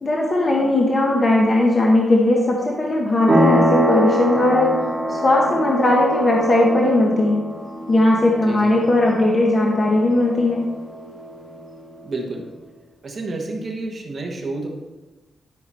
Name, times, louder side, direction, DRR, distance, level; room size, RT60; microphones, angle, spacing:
voice 1, 0.0-4.8 5.1-7.4 7.9-10.7, left 1 dB, 30° left, -2 dB, 1.1 m, -18 dB
sound 1, 3.3-11.6, equal, 20° right, 2.5 m, -24 dB
voice 2, 12.0-12.4 13.0-14.7, right 2 dB, 35° right, 1 dB, 1.3 m, -29 dB
11.5 x 5.9 x 4.3 m, 1.1 s
wide cardioid pair, 170°, 0 cm